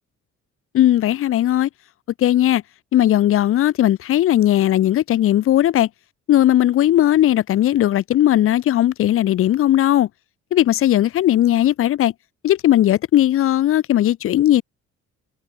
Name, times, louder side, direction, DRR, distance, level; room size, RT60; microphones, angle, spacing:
voice 1, 0.7-1.7 2.2-2.6 2.9-5.9 6.3-10.1 10.5-12.1 12.4-14.6, left 12 dB, 45° left, 0.4 m, -17 dB
cardioid pair, 90°, 30 cm